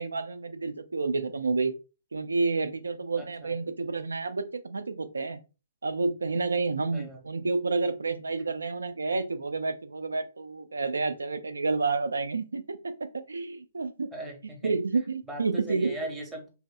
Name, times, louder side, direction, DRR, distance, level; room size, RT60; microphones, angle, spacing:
voice 1, 0.0-1.7 2.1-5.4 5.8-14.1 14.6-15.9, right 4 dB, 70° right, 10 dB, 0.3 m, -30 dB
voice 2, 3.2-3.5 6.9-7.2 14.1-14.7 15.3-16.5, right 1 dB, 10° right, 0 dB, 0.7 m, -39 dB
2.8 x 2.0 x 2.3 m, 0.32 s
figure-of-eight pair, 125°, 0 cm